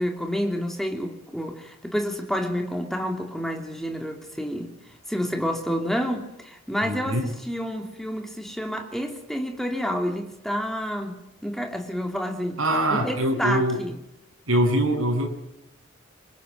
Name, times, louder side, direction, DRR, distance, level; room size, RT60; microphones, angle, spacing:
voice 1, 0.0-4.7 5.1-12.6 12.9-14.0, equal, ahead, 2.9 m, -29 dB
voice 2, 6.8-7.3 12.6-13.8 14.5-15.3, right 1 dB, 85° right, 7.7 m, -23 dB
27.0 x 24.0 x 9.2 m
head